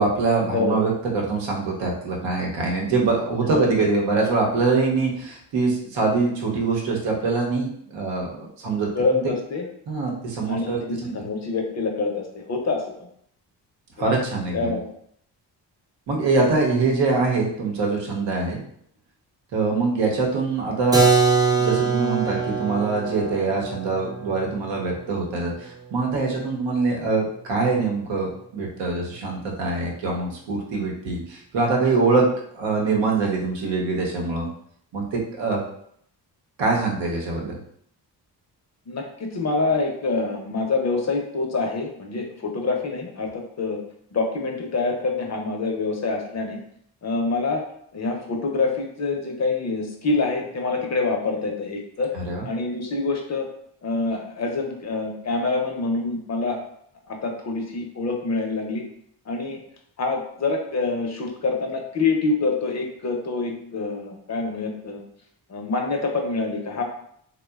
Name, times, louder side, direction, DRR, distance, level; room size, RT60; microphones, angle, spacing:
voice 1, 0.0-9.2 9.9-11.2 14.0-14.8 16.1-18.6 19.5-21.1 21.5-34.5 34.9-35.6 36.6-37.6 52.1-52.5, right 3 dB, 85° right, -1 dB, 0.8 m, -24 dB
voice 2, 0.5-0.8 3.5-3.8 8.9-9.7 10.4-13.1 14.0-14.1 14.5-14.9 38.9-43.8 44.1-46.6 47.0-47.6 47.9-52.1 52.4-53.5 53.8-56.6 57.1-58.8 59.3-59.6 60.0-65.0 65.5-66.8, left 3 dB, 40° left, 2 dB, 0.6 m, -26 dB
Keyboard (musical), 20.9-26.5, right 5 dB, 10° right, 0.3 m, -24 dB
2.8 x 2.2 x 2.2 m, 0.68 s
cardioid pair, 70°, 43 cm